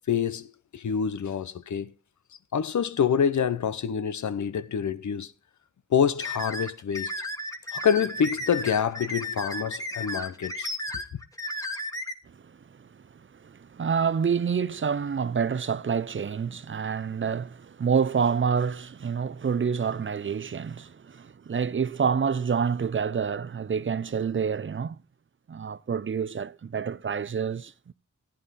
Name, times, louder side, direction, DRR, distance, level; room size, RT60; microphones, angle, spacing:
voice 1, 0.1-1.9 2.5-5.3 5.9-7.1 7.7-10.7, left 7 dB, 80° left, 0.7 m, -26 dB
sound 1, 6.2-12.1, left 1 dB, 10° left, 1.5 m, -34 dB
voice 2, 12.7-13.0 13.4-25.0 25.5-27.9, right 6 dB, 45° right, 0.6 m, -28 dB
14.5 x 9.4 x 4.1 m
cardioid pair, 55°, 29 cm